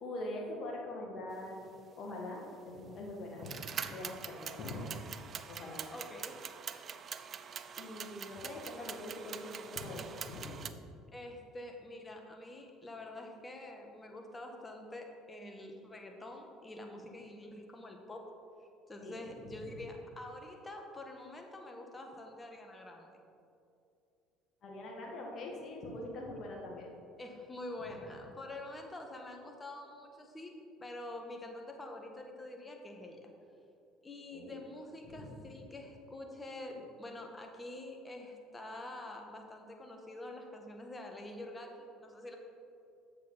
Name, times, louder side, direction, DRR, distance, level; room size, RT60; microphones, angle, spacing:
voice 1, 0.0-1.6 2.0-5.0 5.5-5.8 7.8-11.0 19.0-19.8 24.6-26.9 34.3-34.6 35.0-35.5, left 1 dB, 50° left, -1 dB, 1.7 m, -43 dB
sound 1, 2.5-2.6 3.4-10.7, right 7 dB, 45° right, 0.4 m, -44 dB
voice 2, 5.9-6.3 11.1-18.3 18.9-23.2 27.2-33.2 34.0-42.4, left 1 dB, 20° left, 3 dB, 1.3 m, -46 dB
7.5 x 6.6 x 3.9 m, 2.6 s
hypercardioid pair, 60°, 0 cm